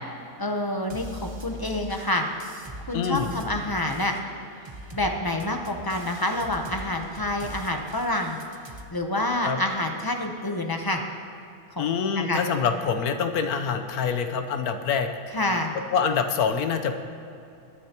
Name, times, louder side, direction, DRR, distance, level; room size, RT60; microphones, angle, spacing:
voice 1, 0.4-2.2 2.9-4.1 4.9-8.4 8.9-11.0 11.8-11.9 12.2-12.4 15.3-15.8, left 1 dB, 30° left, 3 dB, 0.4 m, -27 dB
sound 1, 0.9-8.8, equal, 30° right, 0.5 m, -42 dB
voice 2, 2.9-3.3 9.4-9.6 11.8-15.1 15.9-16.9, left 6 dB, 75° left, 7 dB, 1.3 m, -25 dB
20.5 x 9.9 x 2.9 m, 2.7 s
omnidirectional pair, 1.7 m